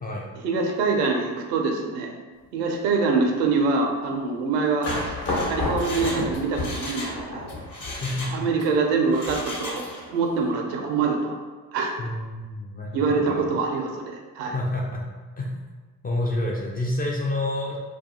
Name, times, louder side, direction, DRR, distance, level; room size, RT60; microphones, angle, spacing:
voice 1, 0.4-2.1 2.5-5.2 5.5-7.5 8.3-11.4 11.7-12.1 12.9-14.5, right 4 dB, 80° right, 2 dB, 0.5 m, -25 dB
Mechanisms, 4.7-7.2 7.5-8.7 9.1-10.1 10.4-10.5, left 1 dB, 40° left, 1.0 m, -36 dB
sound 1, 4.9-7.9, left 2 dB, 55° left, 1.1 m, -29 dB
voice 2, 8.0-8.4 12.0-13.5 14.5-15.0 15.4-15.5 16.0-17.8, left 1 dB, 20° left, -2 dB, 0.3 m, -28 dB
2.3 x 2.2 x 2.7 m, 1.4 s
hypercardioid pair, 50°, 48 cm